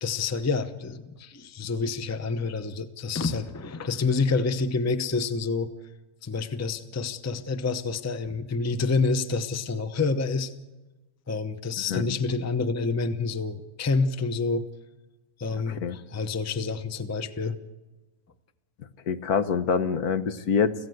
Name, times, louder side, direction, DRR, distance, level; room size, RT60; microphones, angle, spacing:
voice 1, 0.0-5.7 6.2-10.5 11.3-14.6 15.4-17.6, left 4 dB, 15° left, 11 dB, 0.6 m, -28 dB
voice 2, 19.1-20.7, left 6 dB, 70° left, 11 dB, 1.4 m, -25 dB
25.5 x 15.5 x 7.8 m, 1.1 s
omnidirectional pair, 1.7 m